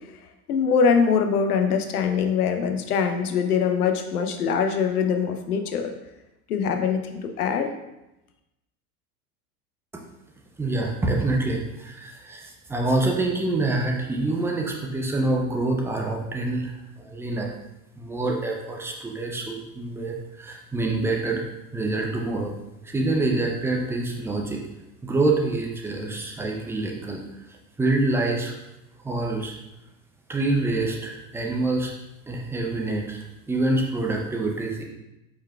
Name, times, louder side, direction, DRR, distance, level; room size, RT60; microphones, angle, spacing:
voice 1, 0.5-5.9 6.5-7.7, left 6 dB, 80° left, 5 dB, 0.6 m, -23 dB
voice 2, 10.6-16.7 17.0-17.5 18.0-21.4 21.7-22.5 22.8-24.6 25.0-27.2 27.8-28.5 29.0-29.5 30.3-31.9 32.3-34.8, right 2 dB, 5° right, 0 dB, 0.4 m, -26 dB
4.6 x 4.4 x 2.2 m, 0.93 s
figure-of-eight pair, 80°, 44 cm